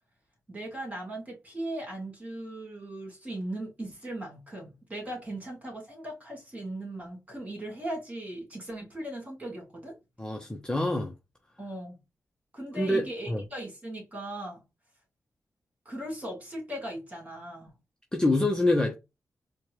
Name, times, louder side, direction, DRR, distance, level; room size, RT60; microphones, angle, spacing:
voice 1, 0.5-10.0 11.6-12.0 12.5-14.6 15.9-17.7, right 1 dB, 25° right, 2.5 m, -38 dB
voice 2, 10.2-11.1 12.8-13.4 18.1-18.9, left 1 dB, 10° left, 0.8 m, -26 dB
4.5 x 2.3 x 3.1 m
cardioid pair, 75°, 6 cm